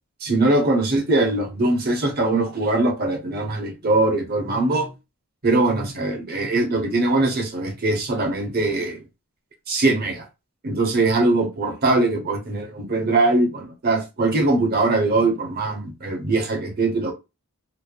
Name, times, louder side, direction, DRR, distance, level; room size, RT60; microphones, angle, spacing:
voice 1, 0.2-4.9 5.4-9.0 9.7-10.3 10.6-17.1, right 2 dB, 45° right, 0.8 m, -21 dB
3.1 x 2.0 x 2.5 m
head